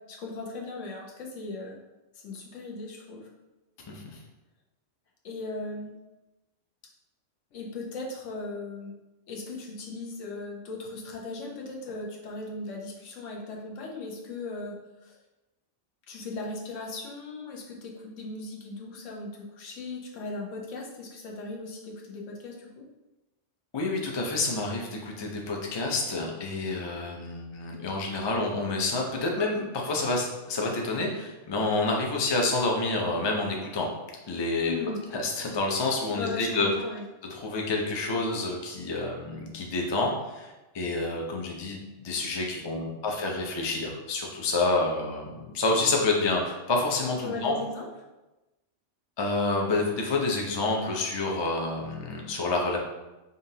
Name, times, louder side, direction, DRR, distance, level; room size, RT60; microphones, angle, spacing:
voice 1, 0.1-1.8 2.2-3.3 5.2-5.9 7.5-8.9 9.3-14.7 15.0-15.2 16.1-22.9 34.6-35.0 36.1-37.0 47.2-47.9, left 3 dB, 85° left, -1 dB, 1.1 m, -37 dB
voice 2, 23.7-33.9 34.3-34.7 35.1-36.7 37.3-40.5 40.7-47.6 49.2-52.8, left 3 dB, 40° left, 0 dB, 0.4 m, -28 dB
5.3 x 2.5 x 2.7 m, 1.1 s
omnidirectional pair, 1.3 m